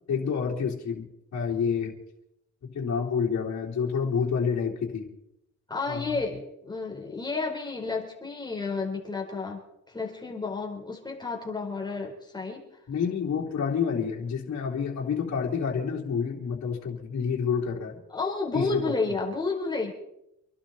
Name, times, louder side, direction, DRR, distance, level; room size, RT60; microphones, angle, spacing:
voice 1, 0.1-2.0 2.7-5.1 5.9-6.2 12.9-18.0 18.5-18.9, left 6 dB, 60° left, -3 dB, 3.6 m, -28 dB
voice 2, 5.7-9.6 9.9-12.6 18.1-19.9, left 4 dB, 15° left, 0 dB, 4.3 m, -31 dB
26.5 x 12.0 x 4.3 m, 0.82 s
cardioid pair, 90°, 30 cm